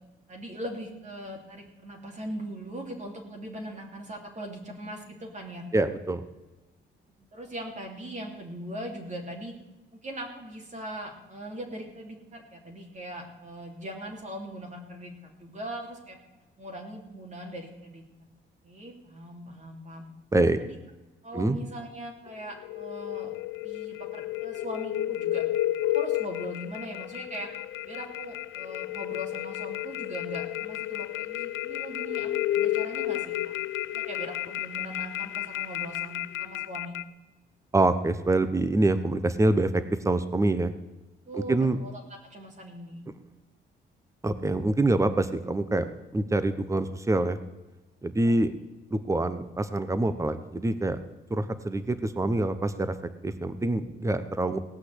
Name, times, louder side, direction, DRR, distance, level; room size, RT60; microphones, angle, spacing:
voice 1, 0.3-5.8 7.3-9.6 9.9-16.2 16.6-18.0 18.6-20.1 20.6-20.7 21.2-23.3 23.6-25.5 25.9-27.5 27.8-33.5 33.9-37.2 41.3-43.1 48.2-48.3, equal, 35° right, 1 dB, 2.9 m, -40 dB
voice 2, 5.7-6.2 20.3-20.6 21.3-21.6 37.7-40.7 41.3-41.8 44.2-47.4 48.0-48.5 48.9-51.0 51.3-52.9 53.2-54.6, right 2 dB, 15° right, 11 dB, 1.1 m, -25 dB
sound 1, 22.3-37.0, left 14 dB, 80° left, 0.5 m, -32 dB
17.5 x 5.9 x 8.0 m, 1.1 s
cardioid pair, 90°, 20 cm